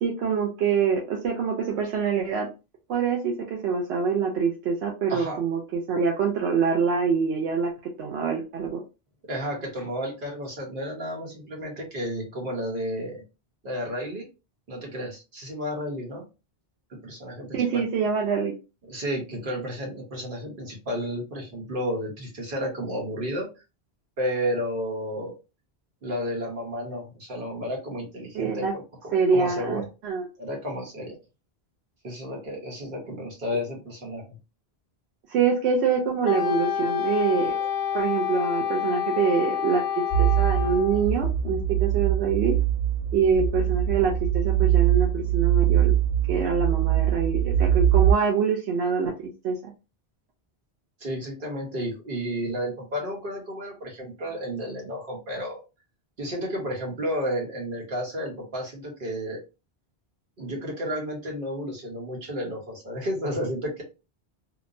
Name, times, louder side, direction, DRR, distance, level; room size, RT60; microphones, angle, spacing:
voice 1, 0.0-2.5 2.9-7.7 8.0-8.8 17.5-18.5 28.3-28.7 29.1-30.3 35.3-37.5 37.9-42.5 43.1-45.9 46.3-49.7, right 6 dB, 80° right, 0 dB, 0.8 m, -25 dB
voice 2, 5.1-5.4 9.3-13.2 13.6-14.3 14.7-16.2 16.9-17.8 18.9-23.5 24.2-25.3 26.0-28.8 29.3-29.9 30.4-31.1 32.0-34.3 37.6-37.7 51.0-55.6 56.2-59.4 60.4-63.8, equal, 55° right, -1 dB, 1.2 m, -32 dB
Wind instrument woodwind instrument, 36.2-41.1, left 8 dB, 80° left, 0.8 m, -28 dB
sound 1, 40.1-48.1, right 11 dB, 45° left, 0.6 m, -22 dB
2.9 x 2.1 x 2.5 m, 0.30 s
omnidirectional pair, 1.1 m